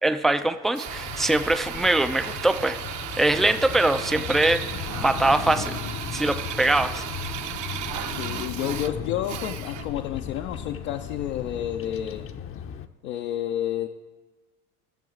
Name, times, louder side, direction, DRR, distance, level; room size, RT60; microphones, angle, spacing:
voice 1, 0.0-2.8 3.2-4.6 5.0-5.8 6.1-7.0, right 2 dB, ahead, 9 dB, 0.3 m, -22 dB
Drill, 0.7-10.0, right 11 dB, 40° right, 0.7 m, -35 dB
Bird vocalization bird call bird song, 0.9-12.9, left 8 dB, 30° left, 0.7 m, -36 dB
sound 1, 2.2-8.1, right 8 dB, 75° right, 2.2 m, -46 dB
voice 2, 8.1-12.3 13.0-13.9, left 11 dB, 70° left, 4 dB, 0.7 m, -30 dB
18.5 x 6.9 x 3.8 m, 1.2 s
figure-of-eight pair, 70°, 45 cm